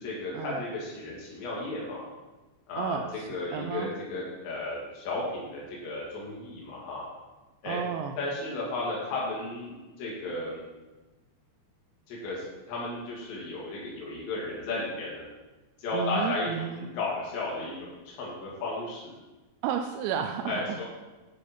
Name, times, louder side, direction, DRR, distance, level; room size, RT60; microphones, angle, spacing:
voice 1, 0.0-2.1 2.7-3.0 3.3-7.1 7.6-7.8 8.2-10.6 12.1-15.3 15.8-19.1 20.5-20.8, left 2 dB, 85° left, -5 dB, 4.3 m, -34 dB
voice 2, 2.8-3.9 7.6-8.2 15.9-16.9 19.6-20.8, right 7 dB, 85° right, 5 dB, 2.8 m, -32 dB
9.9 x 6.4 x 4.2 m, 1.2 s
omnidirectional pair, 5.0 m